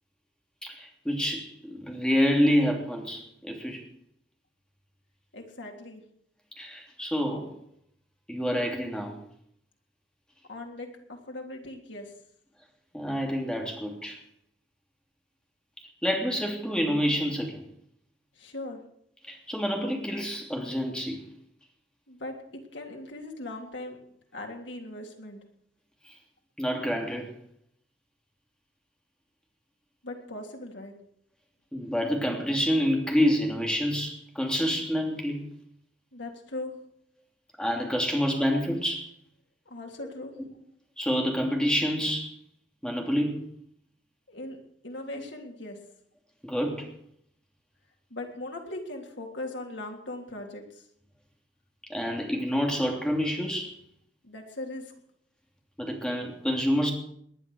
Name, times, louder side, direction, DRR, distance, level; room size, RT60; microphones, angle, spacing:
voice 1, 0.6-3.8 6.6-7.5 8.3-9.2 12.9-14.2 16.0-17.6 19.3-21.2 26.6-27.3 31.7-35.4 37.6-39.1 40.0-40.1 41.0-42.3 42.8-43.4 46.4-46.9 51.9-53.7 55.8-56.9, equal, 5° left, 1 dB, 3.0 m, -27 dB
voice 2, 5.3-6.0 10.5-12.1 18.4-18.8 22.1-24.0 24.3-25.4 30.0-30.9 36.1-36.7 39.7-40.3 44.3-44.6 44.8-45.8 48.1-50.8 54.2-54.9, left 2 dB, 85° left, 2 dB, 3.3 m, -39 dB
19.5 x 10.5 x 6.4 m, 0.69 s
head